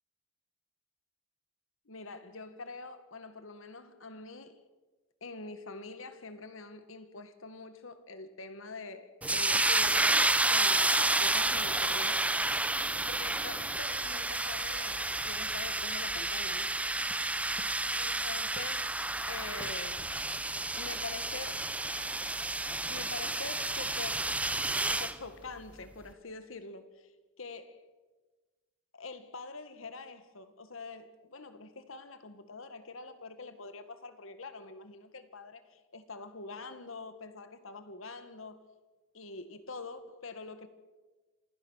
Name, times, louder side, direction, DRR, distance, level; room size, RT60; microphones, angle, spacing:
voice 1, 1.9-4.6 5.2-12.3 12.7-16.8 18.0-18.9 19.2-20.1 20.8-21.7 22.9-24.4 24.9-27.1 27.4-27.9 28.9-38.7 39.1-40.7, left 3 dB, 80° left, 1.8 m, -45 dB
sound 1, 9.2-25.1, right 2 dB, 5° right, 0.6 m, -30 dB
27.5 x 16.5 x 6.4 m
head